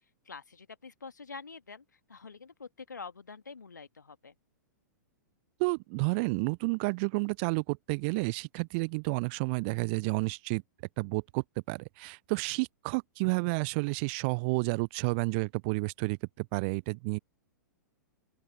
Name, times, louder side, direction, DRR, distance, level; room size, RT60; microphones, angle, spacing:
voice 1, 0.0-4.4, left 4 dB, 75° left, 1.8 m, -47 dB
voice 2, 5.6-10.6 11.0-17.2, right 31 dB, 35° right, 0.5 m, -31 dB
open air
figure-of-eight pair, 105°, 10 cm